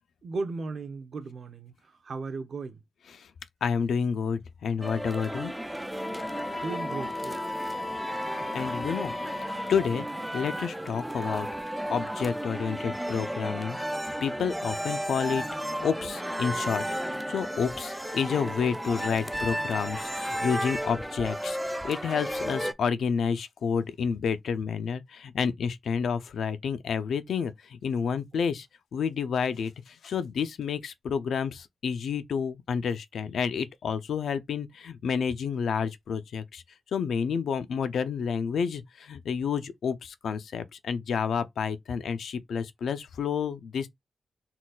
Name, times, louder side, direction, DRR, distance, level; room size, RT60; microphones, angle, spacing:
voice 1, 0.2-2.8 6.6-7.7 28.3-28.5, right 3 dB, 55° right, 0.9 m, -36 dB
voice 2, 3.6-5.5 8.4-9.1 9.4-10.0 10.3-11.5 11.9-13.8 14.2-15.4 15.8-16.8 17.3-28.7 28.9-36.6 36.9-43.9, left 6 dB, 90° left, 0.6 m, -30 dB
sound 1, 4.8-22.7, equal, 5° right, 0.3 m, -33 dB
Wind instrument woodwind instrument, 6.0-10.1, left 3 dB, 25° left, 0.9 m, -37 dB
4.1 x 3.9 x 2.4 m
wide cardioid pair, 160°, 0 cm